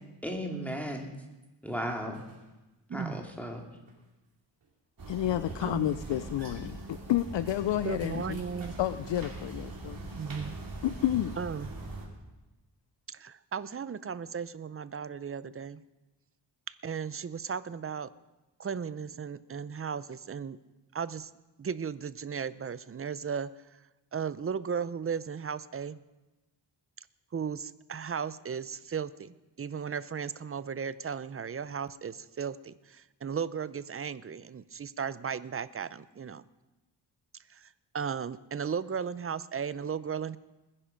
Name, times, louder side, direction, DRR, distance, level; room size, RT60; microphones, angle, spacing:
voice 1, 0.2-1.1 1.6-2.2 2.9-3.6, equal, 5° left, 2 dB, 2.4 m, -35 dB
sound 1, 2.1-2.5 3.0-4.1 4.6-4.7 5.3-5.8 6.1-9.3 9.7-10.6, right 4 dB, 80° right, 4.5 m, -52 dB
sound 2, 5.0-12.1, right 2 dB, 50° right, 3.0 m, -42 dB
voice 2, 5.1-8.4 8.8-10.1 10.8-11.4, left 13 dB, 75° left, 14 dB, 0.5 m, -30 dB
voice 3, 5.6-6.0 7.8-8.7 10.2-10.6 11.4-11.7 13.1-15.8 16.7-18.1 18.6-20.6 20.9-21.3 21.6-23.5 24.1-26.0 27.3-36.4 37.5-40.4, right 6 dB, 30° right, 16 dB, 0.6 m, -36 dB
20.5 x 10.0 x 5.2 m, 1.1 s
wide cardioid pair, 95°, 45 cm